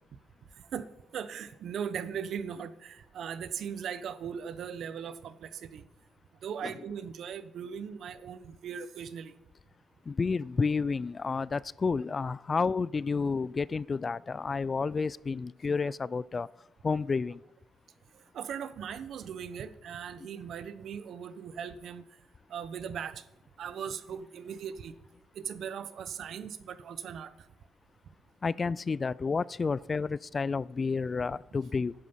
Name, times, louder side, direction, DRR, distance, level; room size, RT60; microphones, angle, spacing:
voice 1, 0.7-5.8 6.4-9.3 18.1-22.1 22.5-23.2 23.6-24.9 25.3-27.5, right 7 dB, 65° right, 14 dB, 1.0 m, -39 dB
voice 2, 10.1-16.5 16.8-17.4 28.4-31.9, left 4 dB, 35° left, 22 dB, 0.3 m, -30 dB
11.0 x 9.6 x 7.1 m, 0.89 s
cardioid pair, 90°, 0 cm